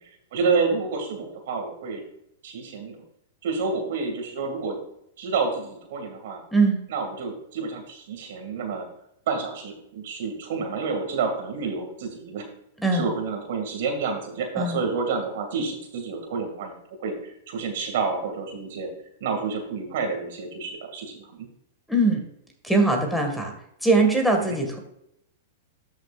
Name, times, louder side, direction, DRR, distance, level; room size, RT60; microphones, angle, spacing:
voice 1, 0.3-2.0 2.4-3.0 3.4-4.8 5.2-6.4 6.9-8.9 9.3-12.5 12.9-16.7 17.0-18.9 19.2-21.5, right 4 dB, 65° right, 4 dB, 2.1 m, -29 dB
voice 2, 21.9-22.2 22.6-23.5 23.8-24.8, right 2 dB, ahead, 2 dB, 1.8 m, -21 dB
12.0 x 6.4 x 2.5 m, 0.77 s
hypercardioid pair, 120°, 0 cm